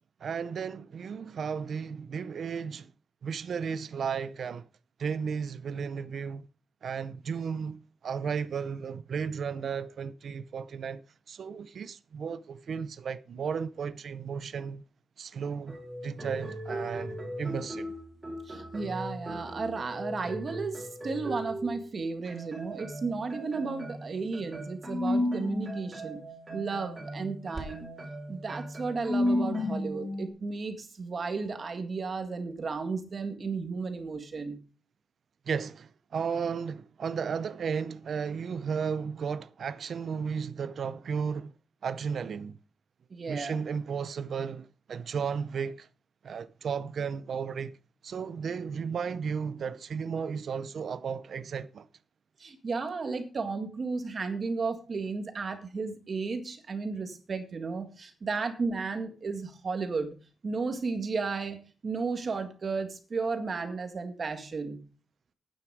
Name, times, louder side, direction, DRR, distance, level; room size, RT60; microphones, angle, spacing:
voice 1, 0.2-2.9 3.2-4.7 5.0-6.5 6.8-11.0 11.3-14.8 15.2-15.8 16.0-17.9 35.5-41.5 41.8-42.6 43.3-45.9 46.2-47.7 48.0-51.9, right 6 dB, 65° right, 0.6 m, -34 dB
sound 1, 15.7-21.9 22.3-30.3, left 1 dB, 25° right, 3.9 m, -35 dB
voice 2, 18.5-26.2 26.5-27.9 28.3-34.6 43.1-43.6 52.4-60.1 60.4-64.8, right 4 dB, 40° right, 1.9 m, -34 dB
11.0 x 9.5 x 4.9 m
wide cardioid pair, 175°, 0 cm